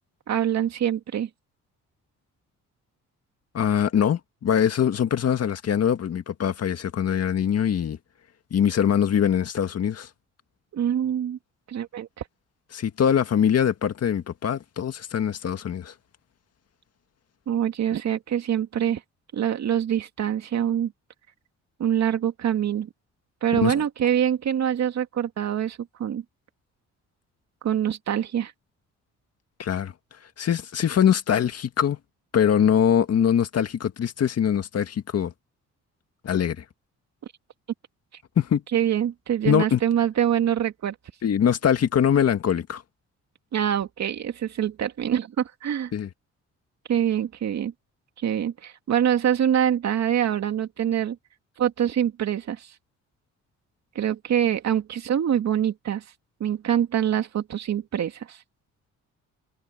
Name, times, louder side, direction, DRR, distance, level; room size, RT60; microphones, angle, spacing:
voice 1, 0.3-1.3 10.7-11.4 11.7-12.1 17.5-19.0 19.3-20.9 21.8-22.9 23.4-26.2 27.6-28.5 38.7-40.9 43.5-45.9 46.9-47.7 48.2-51.2 51.6-52.7 54.0-56.0 56.4-58.4, right 10 dB, 60° right, 2.3 m, -25 dB
voice 2, 3.5-8.0 8.5-10.1 12.7-15.9 23.5-23.8 29.6-29.9 30.4-32.0 32.3-35.3 36.2-36.6 38.4-38.6 39.5-39.8 41.2-42.8 45.9-46.1, left 8 dB, 55° left, 1.9 m, -23 dB
cardioid pair, 90°, 30 cm